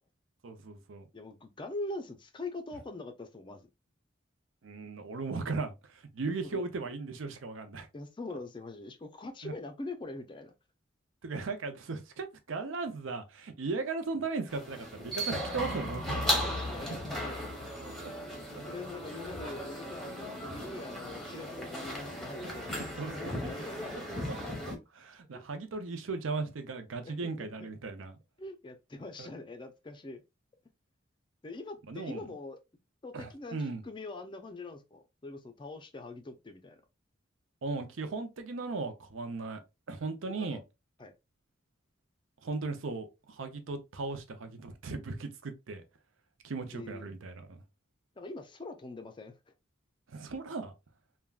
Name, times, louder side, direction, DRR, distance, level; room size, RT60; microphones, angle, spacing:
voice 1, 0.4-1.1 4.6-7.9 9.4-9.5 11.2-16.5 16.9-17.0 17.8-18.1 18.5-18.6 23.0-23.1 24.9-28.2 29.2-29.3 31.9-32.2 33.1-33.8 37.6-39.6 39.9-40.6 42.4-45.8 46.4-47.6 50.1-50.7, right 4 dB, 80° right, 0.6 m, -37 dB
voice 2, 1.1-3.7 6.4-6.6 7.9-10.5 16.1-17.5 18.7-24.0 24.4-24.5 25.3-25.4 27.0-27.5 28.4-30.2 31.4-32.6 33.0-36.8 40.3-40.6 41.0-41.1 46.7-47.1 48.2-49.3, left 2 dB, 25° left, 0.4 m, -43 dB
sound 1, 14.5-24.8, equal, ahead, 0.8 m, -36 dB
3.4 x 2.2 x 2.3 m
head